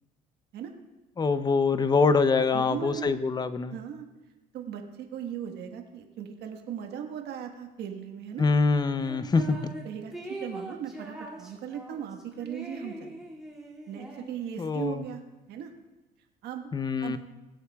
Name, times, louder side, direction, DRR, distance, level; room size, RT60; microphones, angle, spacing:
voice 1, 1.2-3.8 8.4-9.7 14.6-15.1 16.7-17.2, left 4 dB, 25° left, 12 dB, 0.6 m, -24 dB
voice 2, 2.5-3.2 3.7-4.1 4.5-8.4 9.4-13.1 13.9-15.2 15.5-15.7 16.4-16.7 17.0-17.2, right 8 dB, 75° right, 4 dB, 1.4 m, -38 dB
sound 1, 9.0-9.8 10.1-14.8, right 1 dB, 5° right, 2.4 m, -42 dB
21.5 x 8.0 x 2.3 m, 1.1 s
cardioid pair, 110°, 17 cm